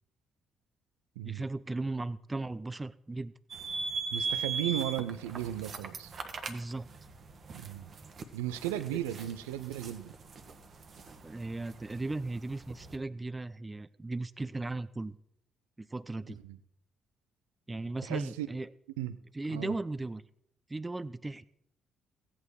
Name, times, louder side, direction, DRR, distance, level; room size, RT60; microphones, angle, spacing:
voice 1, 1.2-3.3 6.5-6.9 11.2-15.2 15.8-16.4 17.7-18.7 19.3-20.2 20.7-21.4, right 2 dB, 20° right, 17 dB, 0.7 m, -36 dB
sound 1, 3.5-13.0, right 4 dB, 50° right, 1.3 m, -40 dB
voice 2, 4.1-6.1 7.5-7.9 8.3-10.1 16.4-16.6 18.0-18.5 19.0-19.2 19.5-19.7, right 13 dB, 80° right, 14 dB, 0.5 m, -35 dB
16.0 x 8.6 x 4.8 m, 0.74 s
hypercardioid pair, 45°, 0 cm